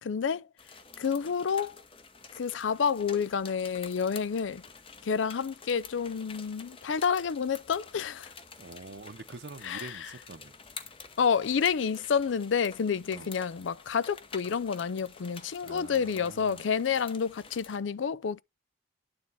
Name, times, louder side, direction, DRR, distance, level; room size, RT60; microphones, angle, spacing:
voice 1, 0.0-0.5 1.0-1.8 2.3-4.6 5.0-8.3 9.6-9.9 11.2-18.4, left 6 dB, 85° left, 0.4 m, -29 dB
sound 1, 0.6-17.8, left 5 dB, 30° left, 0.8 m, -49 dB
voice 2, 8.6-10.6 13.1-13.3 15.6-16.7, right 3 dB, 65° right, 0.8 m, -46 dB
9.7 x 3.5 x 5.4 m
head